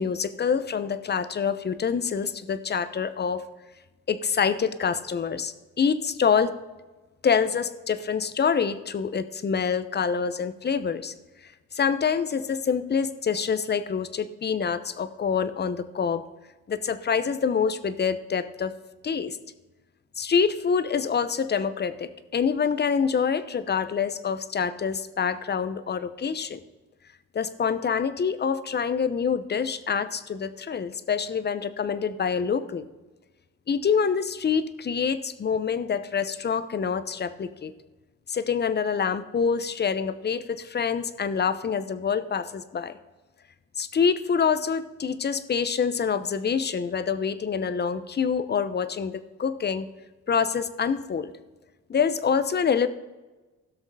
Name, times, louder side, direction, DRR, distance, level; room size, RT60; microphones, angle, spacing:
voice 1, 0.0-3.4 4.1-6.5 7.2-11.1 11.7-16.2 16.7-18.7 19.0-19.4 20.2-26.6 27.3-32.9 33.7-37.7 38.3-43.0 43.8-49.9 50.3-51.3 51.9-52.9, left 6 dB, 35° left, 13 dB, 0.9 m, -26 dB
16.5 x 6.3 x 4.8 m, 1.2 s
cardioid pair, 90°, 30 cm